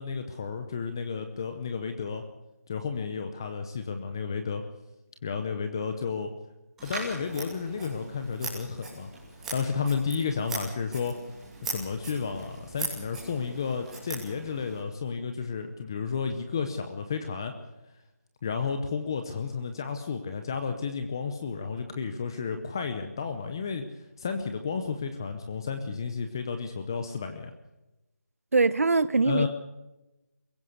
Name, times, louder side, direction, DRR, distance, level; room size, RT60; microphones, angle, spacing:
voice 1, 0.0-2.2 2.7-4.6 5.2-6.3 6.8-9.1 9.5-11.2 11.7-17.5 18.4-23.9 24.2-27.5 29.2-29.5, left 5 dB, 15° left, 0.7 m, -32 dB
Scissors, 6.8-14.8, right 3 dB, 5° right, 2.8 m, -40 dB
voice 2, 28.5-29.5, right 3 dB, 55° right, 1.0 m, -22 dB
23.0 x 16.0 x 8.1 m
figure-of-eight pair, 175°, 9 cm